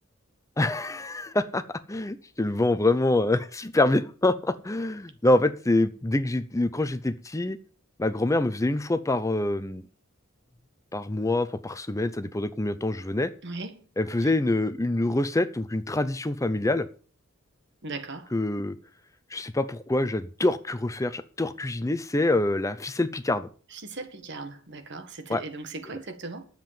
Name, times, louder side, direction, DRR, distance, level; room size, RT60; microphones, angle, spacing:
voice 1, 0.6-7.6 8.0-9.8 10.9-13.3 14.0-16.9 18.3-18.7 19.3-23.5 25.3-25.4, left 2 dB, 15° left, 0.6 m, -26 dB
voice 2, 13.4-13.8 14.2-14.3 17.8-18.3 23.7-26.5, right 3 dB, 60° right, 1.8 m, -38 dB
10.5 x 7.7 x 7.0 m
head